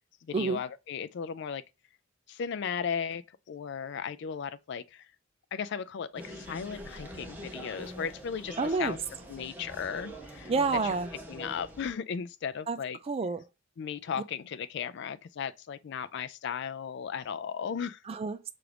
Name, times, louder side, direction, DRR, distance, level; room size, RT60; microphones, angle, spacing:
voice 1, 0.2-1.6 2.3-5.1 5.5-9.0 9.3-10.5 10.8-11.0 11.3-13.0 13.8-18.0, left 7 dB, 55° left, 0.3 m, -36 dB
sound 1, 6.1-11.9, equal, 10° right, 0.8 m, -44 dB
voice 2, 8.6-9.0 10.5-11.1 12.7-12.8 13.1-13.4 18.1-18.5, right 4 dB, 30° right, 0.3 m, -29 dB
5.8 x 2.5 x 3.3 m
head